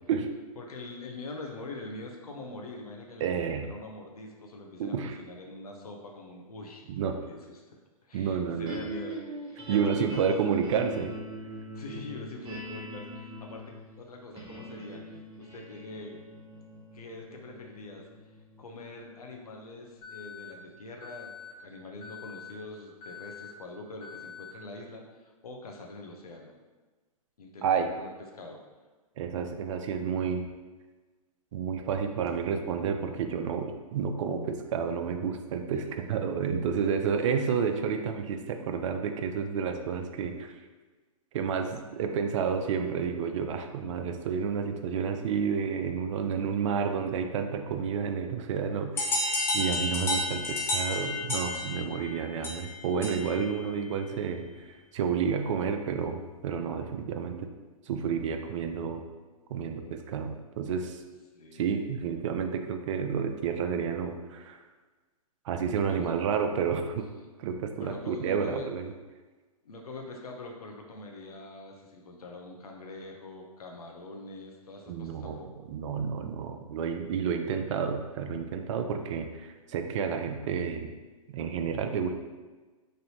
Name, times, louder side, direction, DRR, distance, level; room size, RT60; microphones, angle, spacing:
voice 1, 0.6-10.5 11.7-16.2 16.9-18.1 18.6-26.6 27.4-28.6 35.7-35.9 61.3-61.9 65.9-66.1 67.8-68.7 69.6-75.5, left 2 dB, 85° left, 1 dB, 0.7 m, -44 dB
voice 2, 3.2-3.7 4.8-5.2 6.9-7.2 8.1-8.8 9.7-11.1 27.6-27.9 29.2-30.5 31.5-40.5 41.3-54.5 54.9-57.5 57.9-59.0 59.5-61.0 61.5-64.6 65.5-67.1 67.4-68.9 74.9-75.4 75.7-80.9 81.3-82.1, right 6 dB, 55° right, 6 dB, 0.4 m, -30 dB
sound 1, 8.7-21.0, right 1 dB, 25° right, 0.8 m, -43 dB
Alarm, 20.0-20.5 21.0-21.5 22.0-22.5 23.0-23.5 24.0-24.5, left 7 dB, 30° left, 0.9 m, -45 dB
sound 2, 49.0-53.5, left 2 dB, 15° left, 0.4 m, -31 dB
3.2 x 2.6 x 2.8 m, 1.3 s
hypercardioid pair, 125°, 19 cm